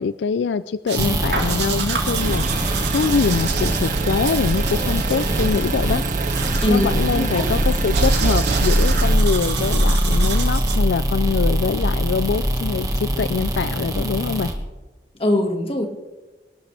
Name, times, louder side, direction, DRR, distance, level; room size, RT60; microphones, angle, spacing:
voice 1, 0.0-2.5 2.9-6.0 6.7-14.5, left 5 dB, 85° left, 15 dB, 0.4 m, -24 dB
sound 1, 0.9-11.1, right 6 dB, 75° right, 2.9 m, -31 dB
sound 2, 1.0-14.5, equal, 20° right, 1.7 m, -22 dB
sound 3, 2.2-9.2, right 5 dB, 45° right, 0.4 m, -27 dB
voice 2, 6.6-7.5 15.2-15.9, left 1 dB, 35° left, 3 dB, 1.9 m, -21 dB
24.5 x 12.5 x 3.4 m, 1.2 s
head